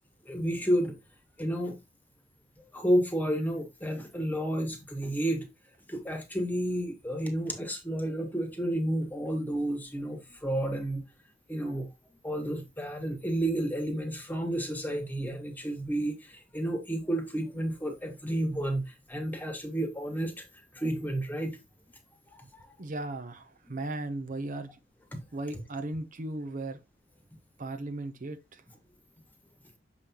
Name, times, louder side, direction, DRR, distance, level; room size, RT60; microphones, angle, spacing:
voice 1, 0.2-0.9 1.4-1.8 2.7-5.5 5.9-11.0 11.5-11.9 12.2-20.5 20.7-21.6 25.1-25.2, right 1 dB, 10° left, 1.4 m, -31 dB
voice 2, 22.8-24.8 25.3-26.8 27.6-28.6, right 2 dB, 45° right, 0.7 m, -36 dB
6.7 x 5.4 x 2.9 m
head